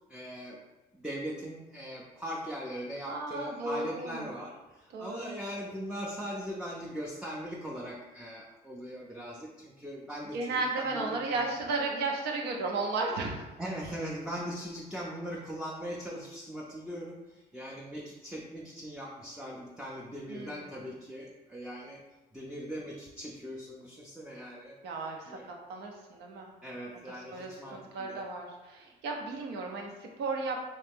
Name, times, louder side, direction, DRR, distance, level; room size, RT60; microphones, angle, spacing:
voice 1, 0.1-0.6 0.9-11.4 13.6-22.0 22.3-24.8 25.3-25.4 26.6-28.2, equal, 5° right, -3 dB, 0.4 m, -40 dB
voice 2, 3.1-4.3 4.9-5.3 10.3-13.4 20.3-20.7 24.8-26.5 27.3-30.6, right 3 dB, 85° right, 1 dB, 0.8 m, -34 dB
3.2 x 3.1 x 3.4 m, 1.1 s
cardioid pair, 110°, 17 cm